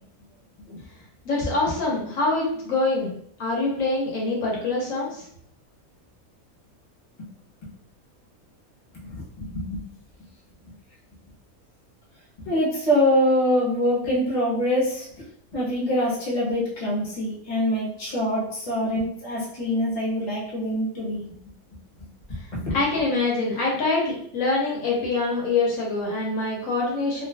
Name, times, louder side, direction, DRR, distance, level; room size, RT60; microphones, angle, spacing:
voice 1, 1.2-3.1 3.4-5.2 22.7-27.3, left 3 dB, 70° left, -4 dB, 1.2 m, -25 dB
voice 2, 8.9-9.8 10.6-10.7 12.4-15.1 15.5-21.4 22.0-22.1 22.5-22.8, equal, 30° left, -5 dB, 1.0 m, -25 dB
2.6 x 2.4 x 3.3 m, 0.66 s
omnidirectional pair, 1.5 m